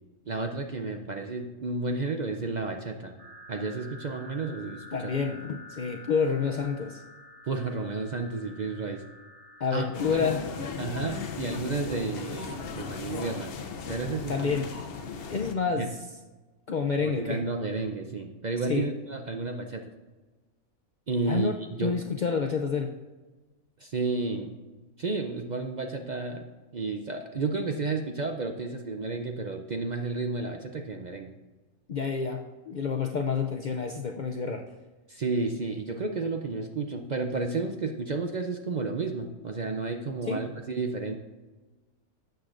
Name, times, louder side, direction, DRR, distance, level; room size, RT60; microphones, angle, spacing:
voice 1, 0.3-3.2 3.5-5.1 7.5-9.0 9.7-9.9 10.1-10.3 10.8-13.5 13.9-14.5 15.8-15.9 17.0-19.8 21.1-21.5 21.8-22.0 23.8-24.5 25.0-26.5 26.7-31.3 35.1-41.2, right 3 dB, 60° right, 4 dB, 0.4 m, -31 dB
sound 1, 3.2-10.2, left 1 dB, 25° right, 1.8 m, -49 dB
voice 2, 4.9-7.0 9.6-10.4 14.3-14.7 15.3-16.0 16.7-17.4 18.7-18.9 21.3-22.9 31.9-34.7 40.3-40.4, left 5 dB, 80° left, 3 dB, 0.4 m, -29 dB
sound 2, 9.9-15.5, left 5 dB, 50° left, 0.8 m, -37 dB
13.0 x 7.9 x 2.5 m, 1.2 s
omnidirectional pair, 1.5 m